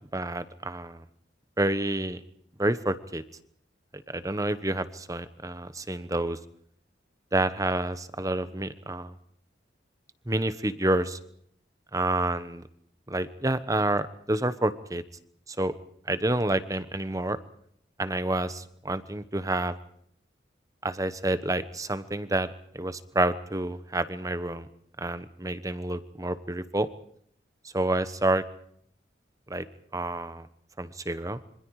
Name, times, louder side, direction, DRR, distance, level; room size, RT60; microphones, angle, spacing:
voice 1, 0.1-1.0 1.6-2.2 2.6-3.2 4.1-6.4 7.3-9.1 10.3-11.2 11.9-12.6 13.1-15.0 15.5-15.7 16.1-17.4 18.0-19.7 20.8-24.7 25.0-26.9 27.7-28.4 29.5-29.7 29.9-30.5 30.8-31.4, right 1 dB, 20° right, 13 dB, 1.1 m, -28 dB
27.0 x 25.0 x 4.8 m, 0.66 s
head